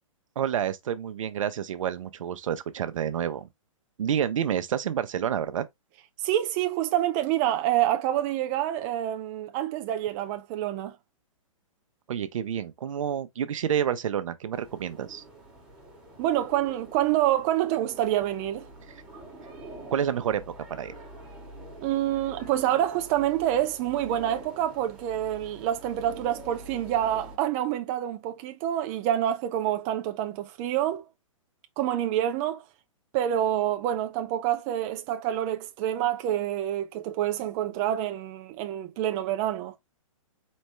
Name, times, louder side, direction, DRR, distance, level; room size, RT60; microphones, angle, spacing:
voice 1, 0.4-3.5 4.0-5.7 12.1-15.2 18.9-19.0 19.9-20.4 20.7-20.9, right 9 dB, 70° right, 0.8 m, -29 dB
voice 2, 6.2-11.0 16.2-18.7 21.8-31.1 31.8-32.6 33.1-39.8, right 12 dB, 30° right, 0.4 m, -27 dB
sound 1, 14.5-27.4, right 1 dB, 5° right, 2.0 m, -46 dB
4.3 x 3.2 x 3.1 m
hypercardioid pair, 145°, 17 cm